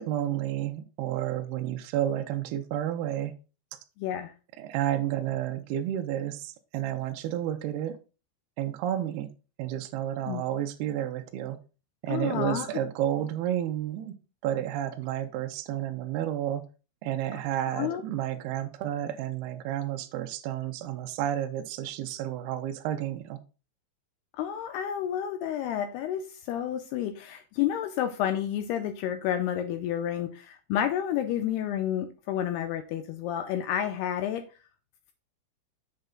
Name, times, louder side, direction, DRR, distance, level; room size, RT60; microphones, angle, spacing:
voice 1, 0.0-3.4 4.6-8.0 8.6-9.3 9.6-11.6 12.0-14.1 14.4-16.6 17.0-23.4, right 11 dB, 80° right, 5 dB, 2.4 m, -31 dB
voice 2, 4.0-4.3 10.3-10.4 12.1-12.7 17.7-18.0 24.3-34.4, left 10 dB, 90° left, 8 dB, 2.3 m, -30 dB
7.8 x 6.8 x 3.8 m, 0.32 s
omnidirectional pair, 5.4 m